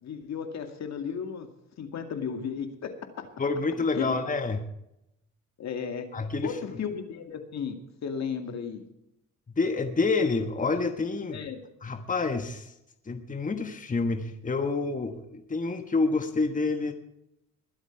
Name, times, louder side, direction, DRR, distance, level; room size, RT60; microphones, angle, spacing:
voice 1, 0.0-1.5 1.8-3.3 3.9-4.2 5.6-6.1 6.4-8.8 11.3-11.6, left 7 dB, 60° left, 6 dB, 2.3 m, -34 dB
voice 2, 3.4-4.6 6.1-6.6 9.6-11.4 11.8-12.7 13.1-16.9, left 3 dB, 25° left, 7 dB, 1.4 m, -28 dB
21.5 x 8.1 x 4.6 m, 0.82 s
cardioid pair, 90°, 30 cm